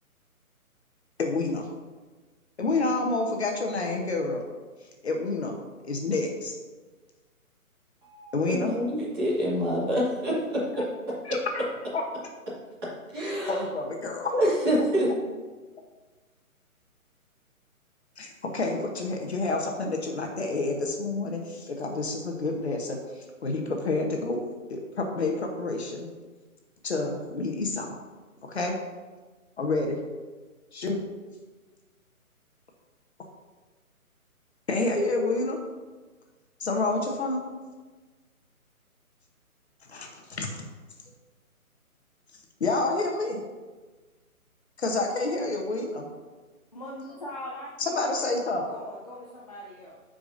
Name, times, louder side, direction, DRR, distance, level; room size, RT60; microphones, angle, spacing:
voice 1, 1.2-1.7 2.6-4.4 5.0-5.6 5.8-6.5 8.3-8.7 11.3-11.6 11.9-12.0 13.5-14.3 18.2-24.4 24.7-26.1 26.8-27.9 28.4-28.8 29.6-30.0 30.7-31.0 34.7-35.6 36.6-37.5 39.9-40.6 42.6-43.4 44.8-46.1 47.8-48.7, left 3 dB, 50° left, 2 dB, 1.2 m, -28 dB
voice 2, 8.0-10.9 11.3-11.4 13.1-13.6 14.1-15.1, equal, 15° right, -9 dB, 2.1 m, -27 dB
voice 3, 46.7-50.0, left 1 dB, 30° left, -4 dB, 0.6 m, -41 dB
14.5 x 5.1 x 2.7 m, 1.3 s
hypercardioid pair, 170°, 43 cm